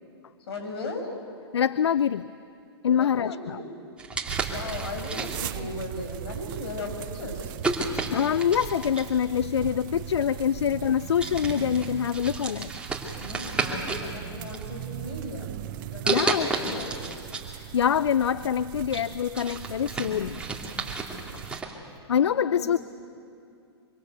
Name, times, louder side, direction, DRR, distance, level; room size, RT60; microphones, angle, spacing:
voice 1, 0.5-1.1 2.9-3.8 4.5-7.6 13.2-15.5 15.8-17.0 22.2-22.8, left 2 dB, 70° left, 4 dB, 5.7 m, -37 dB
voice 2, 1.5-2.3 2.8-3.6 8.1-12.7 16.1-16.8 17.5-20.4 22.1-22.8, left 8 dB, 85° left, 17 dB, 0.5 m, -25 dB
sound 1, 4.0-5.6 6.4-6.6 7.6-9.2 10.3-10.4 10.8-10.9 11.2-14.1 14.4-15.2 16.1-17.5 17.8-17.9 18.4-21.7, right 3 dB, 5° right, 2.9 m, -32 dB
sound 2, 4.3-21.6, right 13 dB, 50° right, 0.8 m, -39 dB
25.5 x 24.5 x 8.1 m, 2.6 s
hypercardioid pair, 125°, 14 cm